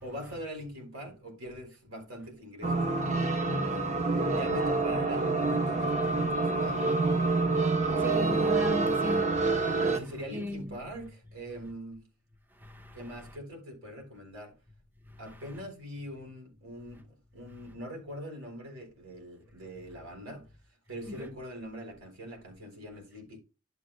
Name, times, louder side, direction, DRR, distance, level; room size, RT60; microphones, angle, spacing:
voice 1, 0.0-7.4 9.8-12.1 12.9-14.5 15.2-20.5 20.9-23.4, equal, 80° right, 3.8 m, -43 dB
sound 1, 2.6-10.0, right 3 dB, 35° right, 1.0 m, -27 dB
voice 2, 8.0-9.3 10.3-10.8 15.4-15.5 21.1-21.3, left 1 dB, 10° right, 0.6 m, -36 dB
11.5 x 6.6 x 2.2 m
head